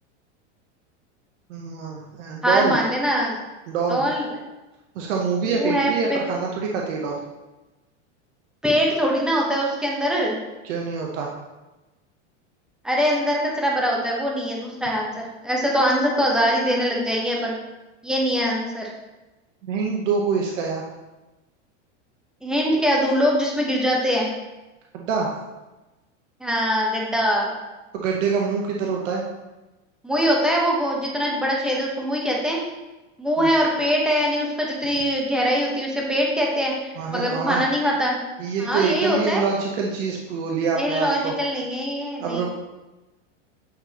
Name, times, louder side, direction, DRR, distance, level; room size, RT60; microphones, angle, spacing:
voice 1, 1.5-2.8 3.7-4.0 5.0-7.2 10.6-11.3 19.6-20.8 24.9-25.3 27.9-29.2 33.4-33.5 37.0-37.6 38.4-41.3 42.2-42.5, right 5 dB, 80° right, -1 dB, 1.0 m, -25 dB
voice 2, 2.4-3.4 3.9-4.3 5.4-6.2 8.6-10.4 12.8-17.6 18.0-18.9 22.4-24.3 26.4-27.5 30.0-32.6 33.2-38.2 38.6-39.4 40.8-42.5, equal, ahead, -2 dB, 1.0 m, -23 dB
8.7 x 4.0 x 2.9 m, 1.1 s
supercardioid pair, 140°, 37 cm